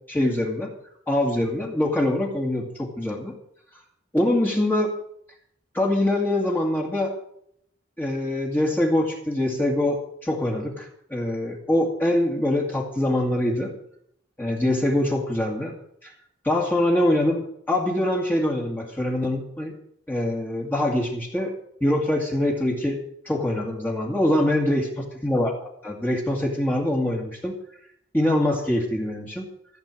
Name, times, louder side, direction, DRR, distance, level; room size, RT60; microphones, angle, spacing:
voice 1, 0.1-0.7 1.1-3.3 4.1-4.9 5.7-7.1 8.0-13.7 14.4-15.7 16.0-16.1 16.4-19.7 20.1-21.5 21.8-23.0 23.3-27.5 28.1-29.5, left 1 dB, 10° left, -2 dB, 2.2 m, -24 dB
15.0 x 7.9 x 7.4 m, 0.69 s
head